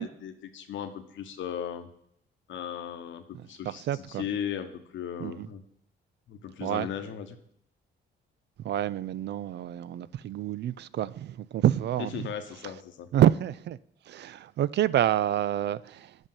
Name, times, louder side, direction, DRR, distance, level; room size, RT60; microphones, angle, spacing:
voice 1, 0.0-1.9 2.5-5.6 6.3-7.4 12.1-13.1, left 9 dB, 75° left, 1.1 m, -37 dB
voice 2, 3.3-4.2 5.2-5.5 6.6-6.9 8.6-12.3 13.1-13.8 14.1-16.2, right 11 dB, 60° right, 0.4 m, -28 dB
8.1 x 5.4 x 7.2 m
cardioid pair, 90°, 20 cm